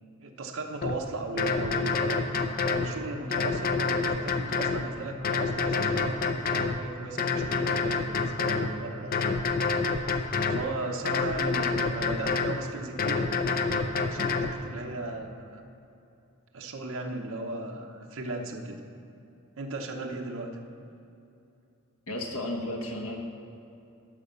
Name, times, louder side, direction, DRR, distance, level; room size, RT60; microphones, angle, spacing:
voice 1, 0.2-2.2 2.6-9.6 10.5-13.3 14.0-15.6 16.5-18.8 19.6-20.5, right 2 dB, 65° right, 2 dB, 0.9 m, -37 dB
sound 1, 0.8-1.0 1.4-2.9 3.3-4.8 5.2-6.8 7.2-8.7 9.1-10.6 11.1-12.6 13.0-14.5, left 4 dB, 45° left, 0.6 m, -27 dB
voice 2, 22.1-23.2, left 1 dB, 75° left, 1 dB, 1.3 m, -33 dB
11.0 x 5.2 x 6.9 m, 2.6 s
head